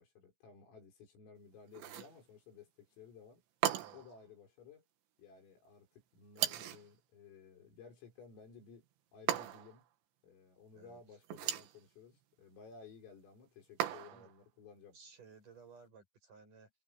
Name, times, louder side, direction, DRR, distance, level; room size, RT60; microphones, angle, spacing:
voice 1, 0.0-3.4 3.9-4.8 5.2-8.9 9.1-9.9 10.2-15.0, left 5 dB, 80° left, 9.2 m, -56 dB
sound 1, 1.7-2.2 3.6-4.1 6.4-6.9 9.3-9.8 11.2-11.8 13.8-14.3, right 11 dB, 70° right, 3.5 m, -37 dB
voice 2, 10.7-11.2 14.0-14.3 14.9-16.7, right 5 dB, 40° right, 9.0 m, -58 dB
omnidirectional pair, 5.9 m